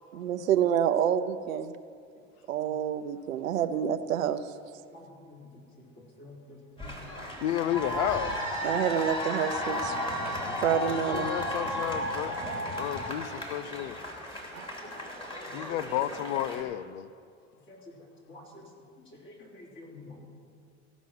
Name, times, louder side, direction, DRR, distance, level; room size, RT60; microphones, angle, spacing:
voice 1, 0.1-1.7 2.5-4.4 8.6-10.0 10.6-11.3 14.5-14.7, right 9 dB, 80° right, 11 dB, 0.7 m, -28 dB
voice 2, 4.9-5.4 6.2-6.6 6.8-7.0 10.2-10.3 12.8-12.9 14.8-14.9 15.3-15.6 17.7-17.8 18.3-18.6 19.2-20.2, left 2 dB, 30° left, -2 dB, 3.7 m, -48 dB
sound 1, 6.8-16.6, equal, 15° left, 3.0 m, -34 dB
voice 3, 7.4-8.4 10.7-10.8 11.1-12.5 12.7-14.0 15.5-17.1, left 12 dB, 65° left, 14 dB, 0.6 m, -32 dB
16.0 x 6.1 x 7.5 m, 2.2 s
hypercardioid pair, 80°, 39 cm